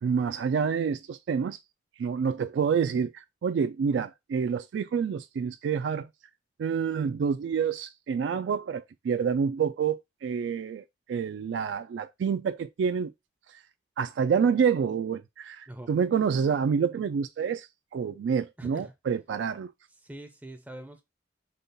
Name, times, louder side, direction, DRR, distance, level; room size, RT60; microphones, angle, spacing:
voice 1, 0.0-1.6 2.0-6.1 6.6-13.1 13.5-13.6 14.0-19.7, right 6 dB, 80° right, 0.3 m, -28 dB
voice 2, 18.6-18.9 20.0-21.0, right 1 dB, 10° right, 0.5 m, -43 dB
5.2 x 2.3 x 3.9 m
head